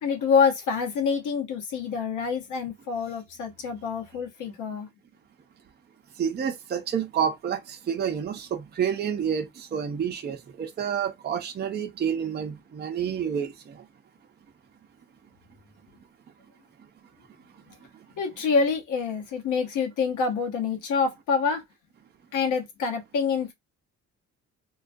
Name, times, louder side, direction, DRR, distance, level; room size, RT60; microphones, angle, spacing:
voice 1, 0.0-4.9 18.2-21.6 22.3-23.5, left 5 dB, 80° left, 0.9 m, -26 dB
voice 2, 6.2-13.8, right 8 dB, 35° right, 0.5 m, -29 dB
2.3 x 2.2 x 2.5 m
cardioid pair, 90°, 30 cm